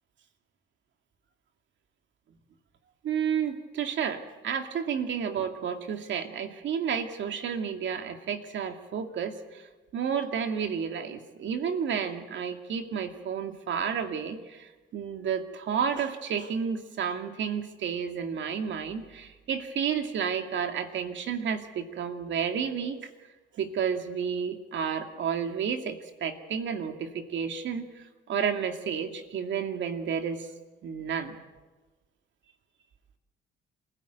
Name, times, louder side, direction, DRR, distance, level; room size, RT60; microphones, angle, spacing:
voice 1, 3.0-9.7 9.9-23.1 23.5-30.5 30.8-31.4, right 7 dB, 70° right, 6 dB, 2.4 m, -31 dB
26.5 x 16.0 x 9.3 m, 1.2 s
cardioid pair, 90°, 20 cm